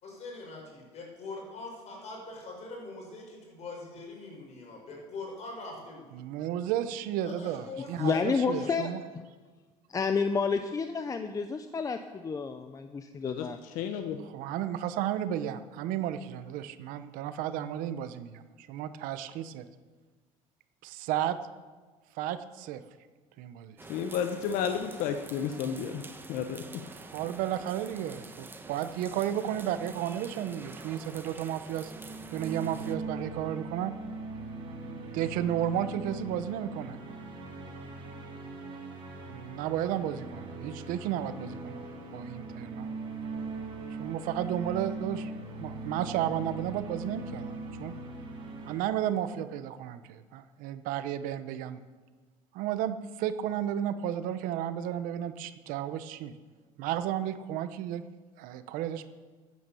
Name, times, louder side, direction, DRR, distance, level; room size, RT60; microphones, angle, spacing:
voice 1, 0.0-6.2 7.2-8.8, left 3 dB, 50° left, 0 dB, 5.5 m, -43 dB
voice 2, 6.1-9.0 14.2-19.7 20.8-21.4 22.1-22.8 23.4-23.8 26.9-31.9 32.3-33.9 35.1-37.0 39.3-41.8 42.1-42.9 44.0-47.9 48.7-51.8 52.5-56.3 56.8-58.0 58.4-59.1, right 11 dB, 75° right, 12 dB, 0.9 m, -33 dB
voice 3, 8.0-8.9 9.2-9.3 9.9-13.6, left 5 dB, 25° left, 8 dB, 0.7 m, -30 dB
voice 4, 13.2-14.2 23.9-26.0 26.3-26.8, left 8 dB, 70° left, 7 dB, 1.0 m, -32 dB
sound 1, 23.8-33.0, right 3 dB, 15° right, 1.1 m, -47 dB
sound 2, 31.8-48.8, right 3 dB, 35° right, 3.6 m, -40 dB
14.0 x 9.4 x 7.0 m, 1.3 s
cardioid pair, 120°, 14 cm